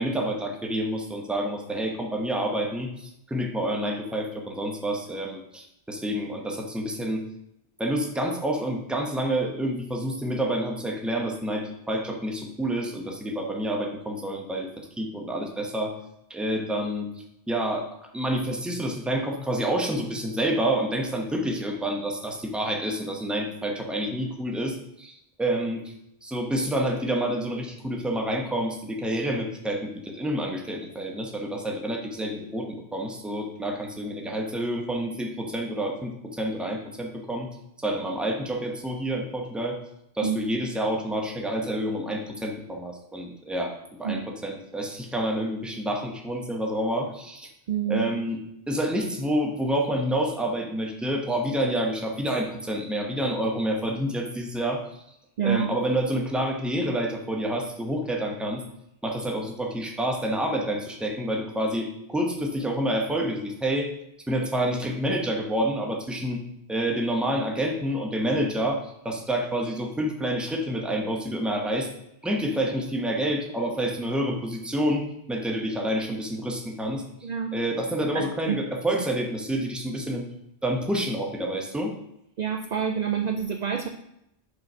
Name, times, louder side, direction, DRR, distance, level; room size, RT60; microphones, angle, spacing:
voice 1, 0.0-7.2 7.8-15.9 16.3-17.1 17.5-17.9 18.1-25.8 26.2-37.5 37.8-39.8 40.1-47.5 47.9-48.4 48.7-54.8 55.4-58.6 59.0-63.9 64.3-66.4 66.7-71.9 72.2-80.3 80.6-81.9, right 1 dB, ahead, 2 dB, 0.7 m, -28 dB
voice 2, 47.7-48.1 55.4-55.7 77.2-77.5 78.1-78.6 82.4-83.9, right 8 dB, 55° right, 6 dB, 0.5 m, -27 dB
5.2 x 4.6 x 5.5 m, 0.80 s
omnidirectional pair, 1.1 m